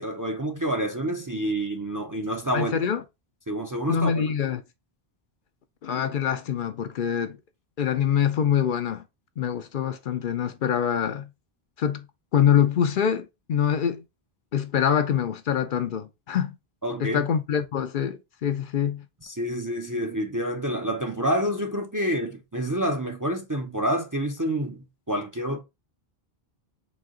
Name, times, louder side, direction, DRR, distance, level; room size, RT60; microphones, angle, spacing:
voice 1, 0.0-2.7 3.5-4.2 16.8-17.3 19.2-25.6, right 1 dB, 25° right, 0.5 m, -28 dB
voice 2, 2.5-3.0 3.9-4.6 5.8-7.4 7.8-9.0 9.4-11.3 11.8-12.1 12.3-14.0 14.5-16.6 17.0-19.1, left 8 dB, 60° left, 0.6 m, -25 dB
4.2 x 2.8 x 3.6 m
omnidirectional pair, 1.1 m